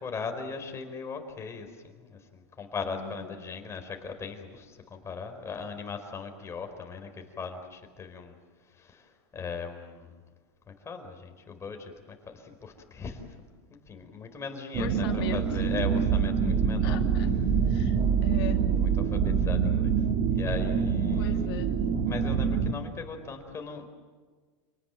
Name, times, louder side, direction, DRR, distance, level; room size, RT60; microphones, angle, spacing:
voice 1, 0.0-8.4 8.7-10.2 10.7-13.5 13.9-17.0 18.8-21.5 22.0-23.9, left 5 dB, 20° left, 4 dB, 4.6 m, -39 dB
voice 2, 2.9-3.5 14.8-15.6 16.8-17.3 17.7-18.6 21.1-21.7, left 10 dB, 65° left, 5 dB, 2.8 m, -40 dB
sound 1, 14.7-22.7, right 7 dB, 45° right, 2.2 m, -25 dB
28.5 x 19.0 x 9.2 m, 1.5 s
supercardioid pair, 125°, 14 cm